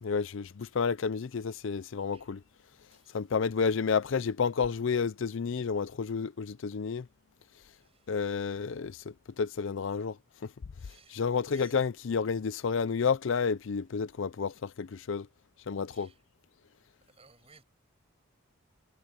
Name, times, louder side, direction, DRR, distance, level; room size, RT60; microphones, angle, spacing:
voice 1, 0.0-2.4 3.1-7.1 8.1-10.2 10.4-10.5 11.1-15.3 15.7-16.1, left 5 dB, 60° left, 0.5 m, -30 dB
voice 2, 7.8-8.2 10.8-11.8 15.9-16.1 17.1-17.6, right 5 dB, 30° right, 6.2 m, -59 dB
head